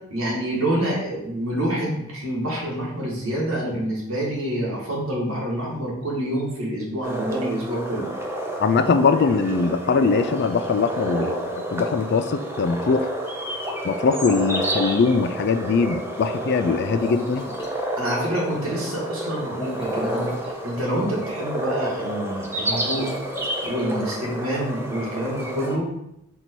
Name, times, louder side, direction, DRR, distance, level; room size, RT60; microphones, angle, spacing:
voice 1, 0.1-8.1 18.0-23.1 23.6-25.9, right 1 dB, 80° right, -4 dB, 1.7 m, -27 dB
sound 1, 7.0-25.8, right 1 dB, 10° right, 0.4 m, -30 dB
voice 2, 8.6-13.1 13.8-17.5, left 4 dB, 50° left, 10 dB, 0.3 m, -21 dB
sound 2, 17.0-17.7 19.6-20.5 22.6-23.7, left 1 dB, 20° left, 0.9 m, -35 dB
4.5 x 2.7 x 4.4 m, 0.82 s
head